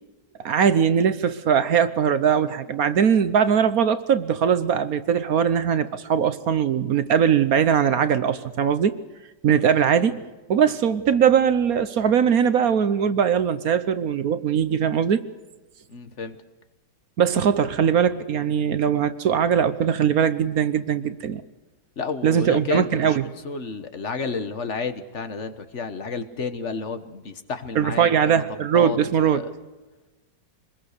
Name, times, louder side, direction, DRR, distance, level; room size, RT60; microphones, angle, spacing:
voice 1, 0.4-9.0 9.4-10.2 10.5-15.2 17.2-21.4 22.2-23.2 27.7-29.4, right 8 dB, 60° right, 12 dB, 1.2 m, -20 dB
voice 2, 15.9-16.4 22.0-23.2 23.4-29.5, left 4 dB, 45° left, 10 dB, 1.5 m, -31 dB
25.0 x 21.0 x 6.7 m, 1.2 s
omnidirectional pair, 1.9 m